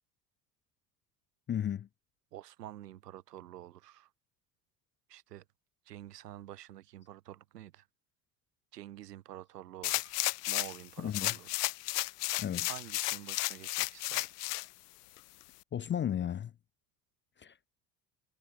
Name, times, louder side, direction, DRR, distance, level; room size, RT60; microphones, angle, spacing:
voice 1, 1.5-1.9 11.0-11.3 12.4-12.7 15.7-16.5 17.4-17.7, left 9 dB, 25° left, 0.6 m, -34 dB
voice 2, 2.3-4.1 5.1-5.4 5.9-7.9 8.7-11.5 12.7-14.3, right 13 dB, 75° right, 1.9 m, -48 dB
sound 1, 9.8-10.8 11.1-14.7 15.2-15.3, left 19 dB, 70° left, 0.9 m, -33 dB
figure-of-eight pair, 60°, 48 cm